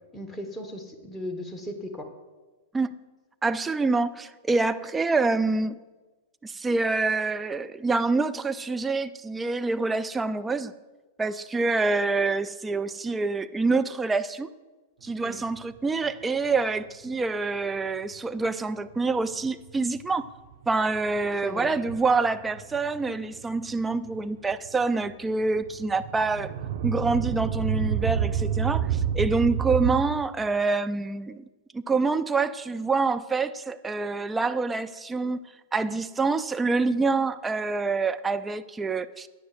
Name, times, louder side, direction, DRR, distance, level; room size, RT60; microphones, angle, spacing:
voice 1, 0.1-2.1 15.2-15.4 21.4-21.7, left 1 dB, 5° left, 1.4 m, -37 dB
voice 2, 3.4-5.8 6.4-10.7 11.2-14.5 15.0-20.2 20.7-26.5 26.8-31.4 31.7-35.4 35.7-39.3, right 3 dB, 15° right, 0.4 m, -26 dB
sound 1, 15.5-15.7 19.0-19.1 19.3-19.4 19.8-20.0 20.6-21.2 21.5-22.1 22.3-25.0 25.4-30.0, right 8 dB, 60° right, 1.1 m, -28 dB
15.5 x 9.8 x 2.6 m
figure-of-eight pair, 100°, 0 cm